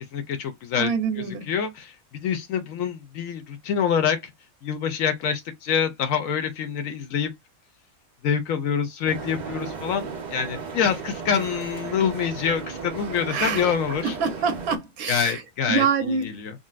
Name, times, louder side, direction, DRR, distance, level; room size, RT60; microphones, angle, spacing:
voice 1, 0.1-0.9 1.5-4.2 4.6-7.3 8.2-14.1 15.1-15.9 16.2-16.5, left 7 dB, 75° left, 0.9 m, -26 dB
voice 2, 0.7-1.5 13.3-13.7 14.0-15.4 15.7-16.3, right 6 dB, 80° right, 1.2 m, -25 dB
sound 1, 9.1-14.8, right 5 dB, 50° right, 0.5 m, -35 dB
3.8 x 2.1 x 2.4 m
omnidirectional pair, 1.5 m